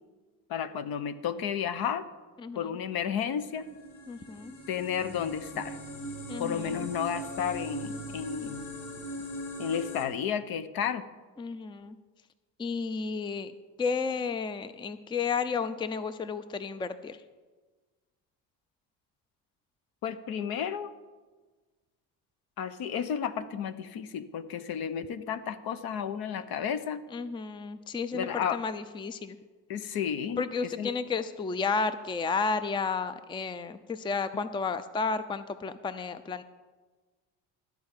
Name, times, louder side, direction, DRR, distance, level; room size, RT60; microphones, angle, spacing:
voice 1, 0.5-2.1 2.5-3.7 4.7-5.8 6.4-8.7 9.6-11.0 20.0-20.9 22.6-27.0 28.1-28.6 29.7-31.0, left 8 dB, 60° left, 12 dB, 0.9 m, -32 dB
voice 2, 2.4-2.7 4.1-4.6 6.3-6.8 11.4-12.0 12.6-13.5 13.8-17.2 27.1-29.4 30.4-36.4, left 5 dB, 10° left, 13 dB, 0.5 m, -32 dB
sound 1, 3.2-10.0, equal, 80° left, 2.0 m, -40 dB
13.0 x 4.7 x 8.9 m, 1.3 s
supercardioid pair, 95°, 41 cm